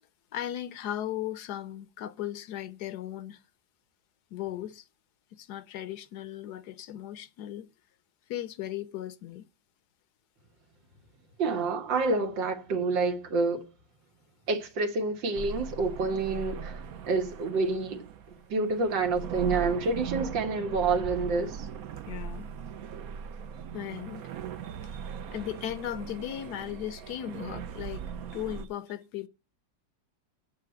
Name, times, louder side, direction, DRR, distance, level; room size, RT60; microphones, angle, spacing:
voice 1, 0.3-3.4 4.3-4.8 5.4-7.7 8.3-9.4 22.1-22.5 23.7-24.2 24.8-24.9 25.3-28.0 28.3-29.3, left 12 dB, 70° left, 1.2 m, -37 dB
voice 2, 11.4-13.6 14.5-16.7 17.1-18.0 18.5-21.7 24.9-25.0, right 3 dB, 85° right, 2.1 m, -28 dB
sound 1, 15.3-28.7, right 7 dB, 60° right, 1.0 m, -39 dB
8.5 x 6.5 x 7.7 m
omnidirectional pair, 2.0 m